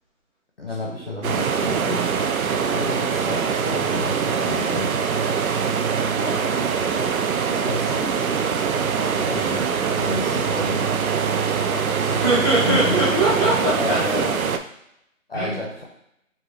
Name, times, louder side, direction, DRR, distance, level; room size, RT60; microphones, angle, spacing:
voice 1, 0.6-2.0 2.4-4.9 7.5-8.2 9.1-10.9 12.6-13.0 13.8-14.3 15.3-15.8, left 3 dB, 45° left, 0 dB, 0.7 m, -31 dB
sound 1, 1.2-14.6, right 6 dB, 85° right, 0.6 m, -23 dB
voice 2, 6.1-6.5 11.6-11.8 12.1-14.0 15.3-15.6, right 2 dB, 15° right, -9 dB, 1.3 m, -22 dB
4.9 x 2.7 x 3.0 m, 0.78 s
hypercardioid pair, 170°, 41 cm